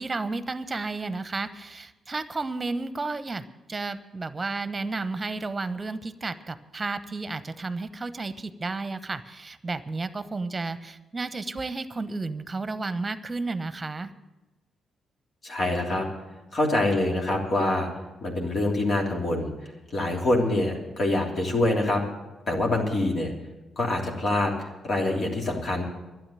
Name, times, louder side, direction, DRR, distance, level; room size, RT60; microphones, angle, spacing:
voice 1, 0.0-14.1, right 3 dB, 30° right, 13 dB, 0.9 m, -32 dB
voice 2, 15.4-16.0 16.5-17.9 18.2-19.5 19.9-22.0 22.5-23.3 23.8-25.8, left 2 dB, 50° left, 0 dB, 3.2 m, -25 dB
12.0 x 9.3 x 9.0 m, 1.1 s
hypercardioid pair, 40°, 0 cm